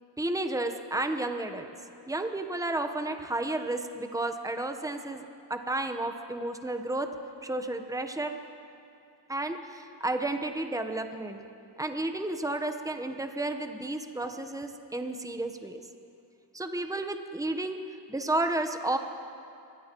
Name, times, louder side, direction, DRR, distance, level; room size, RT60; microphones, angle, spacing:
voice 1, 0.2-1.7 2.1-5.2 5.5-7.1 7.4-8.4 9.3-11.4 11.8-15.8 16.5-17.8 18.1-19.0, right 2 dB, 5° right, 6 dB, 1.0 m, -32 dB
23.5 x 16.5 x 3.1 m, 2.5 s
cardioid pair, 50°, 46 cm